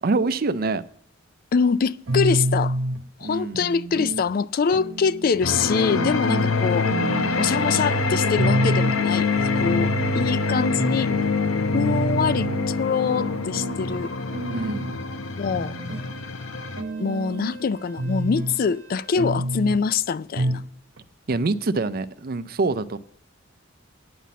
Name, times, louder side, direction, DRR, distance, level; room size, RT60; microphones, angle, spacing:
voice 1, 0.0-0.8 3.2-3.6 6.2-6.5 14.5-15.0 21.3-23.0, right 3 dB, 45° right, 0.5 m, -25 dB
voice 2, 1.5-2.8 3.2-6.9 7.3-9.3 9.6-11.1 11.7-14.1 15.4-15.7 17.0-20.6, left 5 dB, 45° left, 0.3 m, -24 dB
sound 1, 2.1-3.0 3.5-4.3 4.7-5.4 5.9-6.2 6.5-6.6 6.9-7.9 8.4-9.0 9.3-10.3 10.8-11.0 11.4-11.5 11.7-12.6 13.1-13.8 14.3-15.0 15.5-16.1 16.5-17.6 18.0-18.6 19.2-19.8 20.4-20.7 21.0-21.1 21.3-21.4, right 1 dB, 70° right, 0.9 m, -28 dB
sound 2, 5.4-16.8, left 3 dB, 85° left, 0.8 m, -25 dB
sound 3, 7.8-13.9 15.8-19.2, left 2 dB, 5° right, 1.4 m, -40 dB
9.4 x 5.9 x 8.2 m
head